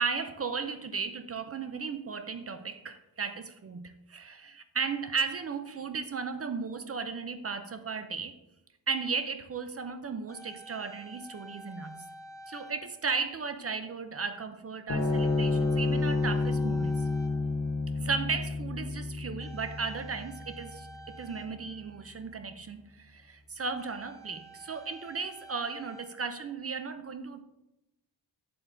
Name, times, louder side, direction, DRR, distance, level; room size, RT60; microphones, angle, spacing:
voice 1, 0.0-8.4 8.9-12.0 12.5-17.0 18.0-27.4, right 5 dB, 35° right, 9 dB, 0.4 m, -35 dB
sound 1, 10.1-13.6 14.3-14.5 15.0-18.3 19.4-22.4 23.2-23.3 23.6-26.7, right 1 dB, 5° left, 0.7 m, -51 dB
sound 2, 14.9-21.5, left 3 dB, 35° left, 1.0 m, -30 dB
9.0 x 7.5 x 2.6 m, 0.93 s
wide cardioid pair, 160°, 45 cm